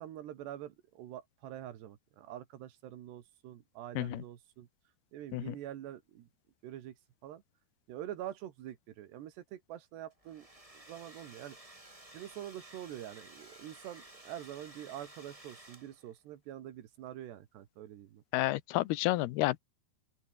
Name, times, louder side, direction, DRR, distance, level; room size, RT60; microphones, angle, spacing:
voice 1, 0.0-4.7 5.1-6.3 6.6-7.0 7.2-7.4 7.9-10.5 10.7-11.6 12.1-18.2, right 12 dB, 90° right, 4.0 m, -45 dB
Domestic sounds home sounds, 10.1-16.2, right 1 dB, 10° right, 3.1 m, -55 dB
voice 2, 18.3-19.6, left 17 dB, 80° left, 2.7 m, -30 dB
open air
omnidirectional pair, 4.7 m